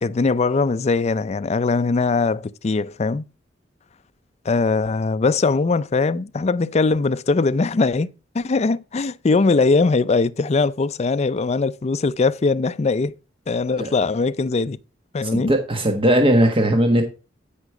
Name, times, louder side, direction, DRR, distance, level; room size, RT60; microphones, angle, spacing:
voice 1, 0.0-3.3 4.5-13.1 13.5-14.8 15.1-15.5, left 3 dB, 35° left, 0.4 m, -21 dB
voice 2, 15.3-17.0, right 1 dB, 30° right, 1.4 m, -18 dB
13.0 x 5.2 x 4.8 m
head